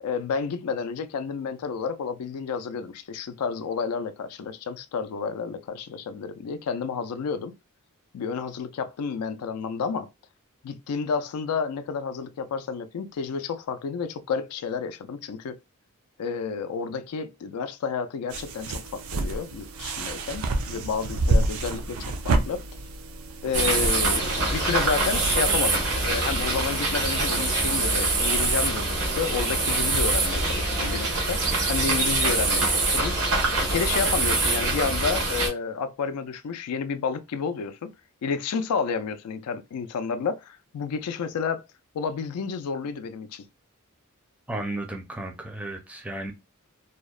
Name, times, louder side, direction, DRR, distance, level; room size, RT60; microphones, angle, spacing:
voice 1, 0.0-7.5 8.1-10.1 10.6-15.6 16.2-22.6 23.4-33.4 33.6-37.8 38.2-41.6 41.9-43.5, left 5 dB, 85° left, 0.4 m, -30 dB
sound 1, 18.3-30.6, right 2 dB, 70° right, 0.4 m, -31 dB
sound 2, 23.5-35.5, right 2 dB, 90° right, 1.0 m, -24 dB
voice 2, 44.5-46.3, right 1 dB, 5° right, 0.4 m, -34 dB
2.8 x 2.0 x 2.3 m
head